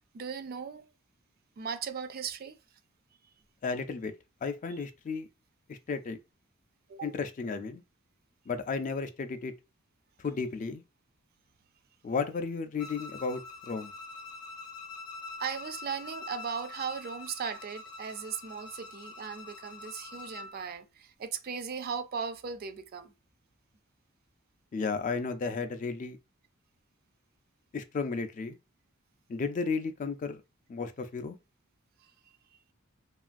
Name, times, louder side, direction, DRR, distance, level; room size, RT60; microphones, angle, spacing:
voice 1, 0.1-0.9 1.6-2.6 6.9-7.1 15.4-23.1 32.0-32.1, right 6 dB, 45° right, 0.3 m, -37 dB
voice 2, 3.6-4.1 4.4-5.3 5.7-6.2 7.0-7.8 8.5-9.5 10.2-10.8 12.0-13.9 24.7-26.2 27.7-28.6 29.3-30.4 30.7-31.4, left 4 dB, 35° left, 0.3 m, -33 dB
Bowed string instrument, 12.8-20.6, left 3 dB, 85° left, 0.6 m, -45 dB
3.0 x 2.4 x 2.5 m
head